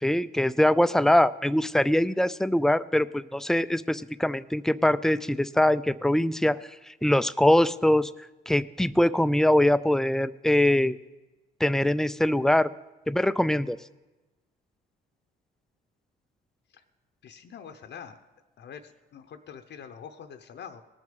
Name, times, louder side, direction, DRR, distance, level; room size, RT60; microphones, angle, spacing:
voice 1, 0.0-6.6 7.0-8.1 8.5-11.0 11.6-12.7 13.1-13.8, left 1 dB, ahead, 15 dB, 0.3 m, -23 dB
voice 2, 17.2-18.2 18.6-20.8, left 7 dB, 60° left, 7 dB, 0.7 m, -44 dB
19.0 x 6.4 x 5.2 m, 1.1 s
cardioid pair, 90°, 20 cm